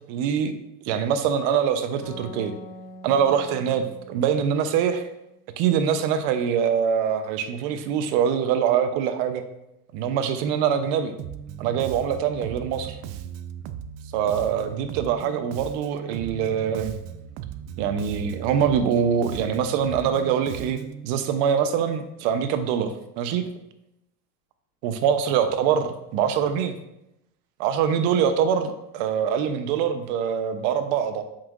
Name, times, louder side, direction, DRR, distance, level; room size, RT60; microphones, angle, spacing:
voice 1, 0.1-0.5 0.8-2.5 3.0-5.0 5.6-9.4 9.9-11.1 11.6-13.0 14.1-16.9 17.8-23.5 24.8-26.7 27.6-31.2, right 8 dB, 65° right, 9 dB, 0.9 m, -24 dB
sound 1, 2.0-5.5, left 1 dB, 30° left, 1.4 m, -45 dB
Bass guitar, 11.2-21.1, right 9 dB, 40° right, 0.4 m, -37 dB
7.6 x 5.7 x 2.5 m, 0.87 s
supercardioid pair, 125°, 43 cm